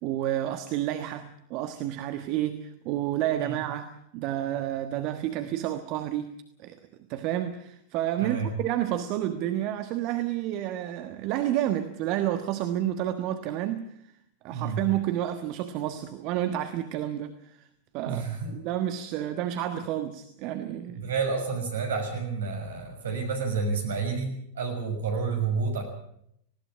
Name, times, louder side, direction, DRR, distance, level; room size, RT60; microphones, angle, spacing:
voice 1, 0.0-6.3 6.6-6.8 7.1-13.8 14.4-17.6 17.9-18.3 18.5-21.1, right 12 dB, 40° right, 9 dB, 1.3 m, -30 dB
voice 2, 14.5-14.8 18.0-18.6 21.0-25.8, right 5 dB, 65° right, 4 dB, 6.3 m, -30 dB
19.5 x 17.5 x 8.7 m, 0.74 s
figure-of-eight pair, 90°, 0 cm